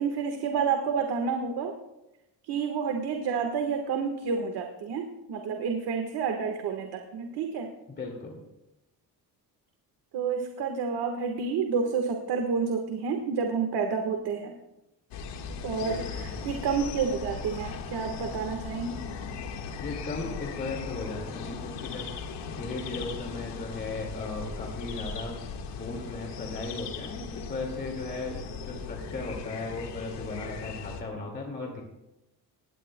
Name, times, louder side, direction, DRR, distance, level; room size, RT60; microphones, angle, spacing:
voice 1, 0.0-1.8 2.5-7.7 10.1-14.5 15.6-19.0, right 5 dB, 70° right, 3 dB, 1.4 m, -29 dB
voice 2, 8.0-8.4 15.8-16.3 19.8-22.1 22.5-25.3 25.7-31.8, left 3 dB, 25° left, 0 dB, 2.1 m, -36 dB
sound 1, 15.1-31.0, left 5 dB, 90° left, 1.6 m, -38 dB
19.5 x 17.0 x 2.2 m, 0.93 s
cardioid pair, 175°, 41 cm